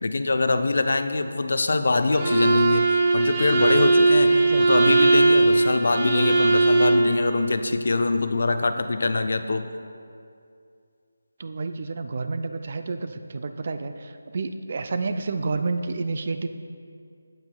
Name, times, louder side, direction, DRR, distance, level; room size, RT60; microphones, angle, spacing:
voice 1, 0.0-2.9 3.1-4.3 4.6-9.6, left 3 dB, 60° left, 8 dB, 0.5 m, -23 dB
Bowed string instrument, 2.1-7.1, right 3 dB, 25° right, 1.1 m, -19 dB
voice 2, 4.3-4.9 11.4-16.5, right 3 dB, 45° right, 9 dB, 0.4 m, -30 dB
15.5 x 5.9 x 2.3 m, 2.4 s
figure-of-eight pair, 160°, 0 cm